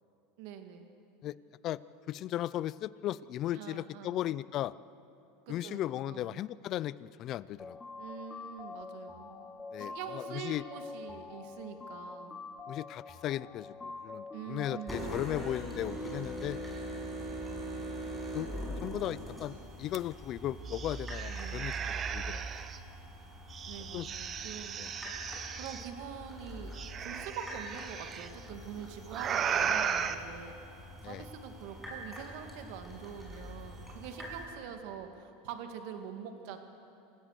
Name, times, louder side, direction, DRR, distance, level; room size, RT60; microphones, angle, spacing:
voice 1, 0.4-0.9 3.5-4.4 5.5-6.4 8.0-9.5 9.8-12.4 14.3-15.2 21.3-21.7 23.7-24.8 25.5-30.6 31.0-36.6, right 8 dB, 65° right, 6 dB, 2.2 m, -45 dB
voice 2, 2.1-4.7 5.5-7.8 9.7-9.9 10.3-10.6 12.7-16.6 18.3-18.5 18.8-22.4 23.9-24.1 24.8-24.9 31.0-31.2, left 13 dB, 45° left, 20 dB, 0.5 m, -36 dB
sound 1, 7.6-15.6, left 4 dB, 15° left, 1.1 m, -46 dB
sound 2, 14.9-34.4, equal, ahead, 6.1 m, -43 dB
sound 3, 19.9-20.0 20.4-22.8 23.5-25.9 26.7-28.3 29.1-30.1, right 7 dB, 30° right, 1.1 m, -35 dB
27.5 x 16.0 x 6.7 m, 2.7 s
supercardioid pair, 120°, 0 cm